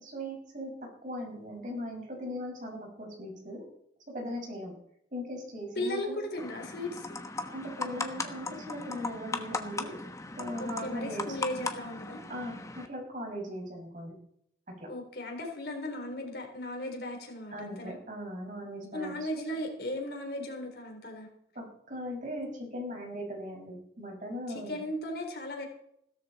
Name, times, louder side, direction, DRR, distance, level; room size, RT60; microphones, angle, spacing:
voice 1, 0.0-0.7 1.0-3.6 4.1-4.7 5.1-6.2 7.5-10.0 10.4-11.3 12.3-14.1 14.7-14.9 17.5-19.5 21.5-24.8, equal, 45° right, 0 dB, 6.1 m, -39 dB
voice 2, 5.8-7.2 10.6-12.2 14.9-18.0 18.9-21.3 24.5-25.7, left 1 dB, 60° left, 3 dB, 4.0 m, -36 dB
sound 1, 6.4-12.9, left 3 dB, 20° left, 1.2 m, -38 dB
16.5 x 13.5 x 4.3 m, 0.72 s
head